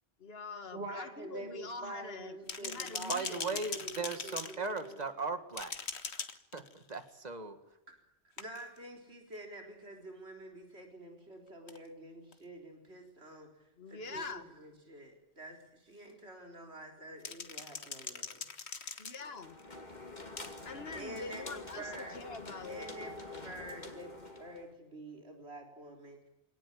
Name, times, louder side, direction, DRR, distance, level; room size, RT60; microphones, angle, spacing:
voice 1, 0.2-3.7 13.8-14.5 19.0-19.6 20.6-23.2, left 3 dB, 65° left, 9 dB, 2.0 m, -44 dB
voice 2, 0.7-5.0 8.4-13.5 13.9-18.4 20.9-22.2 22.5-26.3, right 1 dB, 80° right, 2 dB, 4.3 m, -47 dB
sound 1, 2.5-5.2 5.5-7.0 8.4-8.8 11.7-11.8 12.3-12.4 14.1-14.2 17.2-19.6 20.4-20.5, left 5 dB, 85° left, 1.8 m, -41 dB
voice 3, 3.1-5.7 6.5-6.6 6.9-7.6, right 4 dB, 40° right, 9 dB, 2.0 m, -37 dB
sound 2, 19.2-24.7, left 2 dB, 45° left, 2.6 m, -47 dB
25.5 x 18.5 x 9.9 m, 0.91 s
omnidirectional pair, 1.1 m